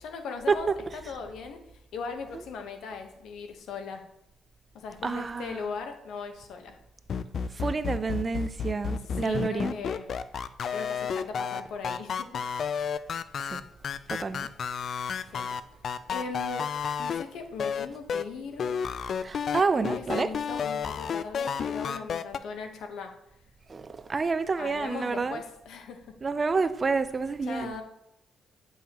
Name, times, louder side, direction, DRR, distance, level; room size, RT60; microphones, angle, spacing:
voice 1, 0.0-0.7 1.1-1.6 1.9-4.0 4.7-6.8 9.2-10.1 10.7-12.4 15.3-15.5 16.1-16.7 17.0-18.8 19.7-23.1 24.6-26.0 27.5-27.8, left 5 dB, 80° left, 1.0 m, -39 dB
voice 2, 5.0-5.6 7.5-9.7 13.5-13.6 14.1-14.5 19.2-20.3 23.7-25.4 26.2-27.7, right 4 dB, 35° right, 0.4 m, -29 dB
sound 1, 7.1-17.2 17.6-18.2 18.6-22.4, left 6 dB, 55° left, 0.3 m, -31 dB
8.8 x 5.5 x 2.9 m
cardioid pair, 90°, 0 cm